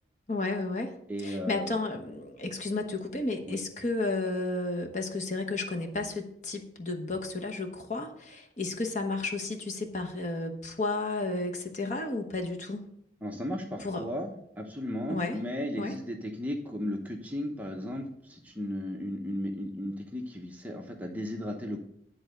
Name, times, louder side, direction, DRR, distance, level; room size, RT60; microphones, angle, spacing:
voice 1, 0.3-0.9 1.2-12.9 13.8-14.1 15.1-15.4 15.8-15.9, left 2 dB, 40° left, 4 dB, 1.1 m, -32 dB
voice 2, 1.1-1.7 3.5-3.6 13.2-21.8, left 1 dB, 10° right, 1 dB, 0.9 m, -35 dB
10.5 x 3.8 x 6.6 m, 0.72 s
head